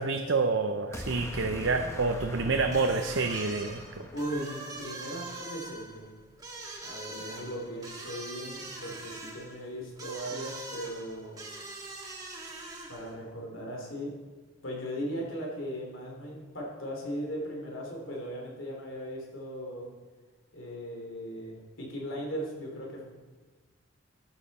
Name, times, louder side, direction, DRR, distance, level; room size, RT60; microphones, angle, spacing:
voice 1, 0.0-4.1, right 3 dB, 70° right, 5 dB, 0.7 m, -28 dB
sound 1, 0.9-5.2, left 1 dB, 15° left, 0.9 m, -42 dB
sound 2, 2.7-13.2, right 2 dB, 20° right, 1.9 m, -43 dB
voice 2, 4.1-6.1 6.8-11.5 12.9-14.1 14.6-19.9 20.5-23.0, equal, 80° left, -1 dB, 3.2 m, -38 dB
14.0 x 9.0 x 4.2 m, 1.3 s
head